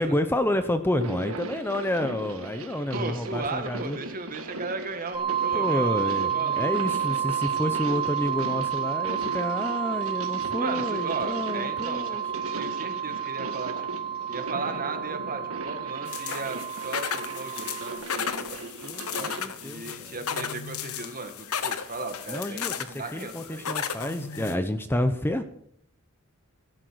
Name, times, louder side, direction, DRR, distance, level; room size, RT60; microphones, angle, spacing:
voice 1, 0.0-4.0 5.5-12.2 18.8-20.2 22.3-25.4, left 1 dB, 10° left, 9 dB, 0.8 m, -29 dB
sound 1, 0.8-19.5, right 2 dB, 70° right, 1.9 m, -38 dB
voice 2, 2.9-5.9 6.3-6.7 10.6-12.2 12.6-18.5 19.1-23.7, right 3 dB, 40° right, 7 dB, 2.0 m, -36 dB
sound 2, 5.1-17.9, right 9 dB, 10° right, 4.7 m, -30 dB
sound 3, 16.1-24.6, left 7 dB, 70° left, 1.2 m, -34 dB
16.5 x 12.0 x 6.3 m, 0.70 s
head